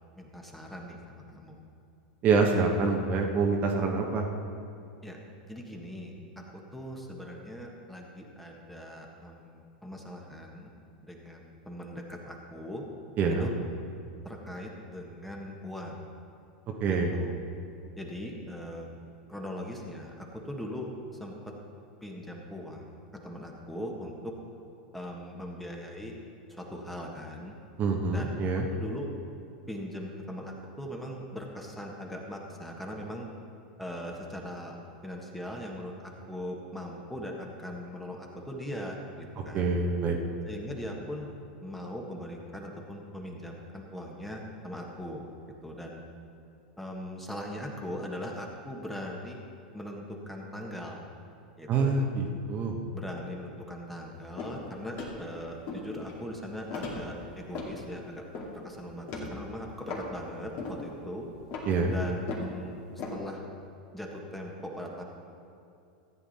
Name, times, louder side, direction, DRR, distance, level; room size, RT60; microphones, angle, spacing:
voice 1, 0.2-1.6 5.0-5.2 5.4-10.7 11.0-12.8 13.4-13.5 14.2-16.0 16.9-17.3 18.0-18.9 19.3-21.5 22.0-24.4 24.9-26.2 26.5-27.6 28.1-28.4 28.7-29.1 29.7-33.3 33.8-34.8 35.0-39.7 40.4-41.3 41.6-45.2 45.6-46.0 46.8-49.4 49.7-51.0 51.6-51.9 52.9-58.2 58.5-61.3 61.9-63.4 63.9-65.0, equal, 5° left, 0 dB, 1.6 m, -40 dB
voice 2, 2.2-4.2 13.2-13.5 16.8-17.2 27.8-28.6 39.5-40.2 51.7-52.7 61.7-61.9, right 4 dB, 40° right, 2 dB, 1.2 m, -26 dB
sound 1, 54.4-54.6 55.0-55.3 55.7-56.3 56.7-57.8 58.2-58.6 59.1-59.4 59.9-60.1 60.6-60.9 61.2-62.6 63.0-63.2, left 3 dB, 50° left, 2.4 m, -38 dB
13.5 x 8.9 x 4.3 m, 2.6 s
hypercardioid pair, 110°, 5 cm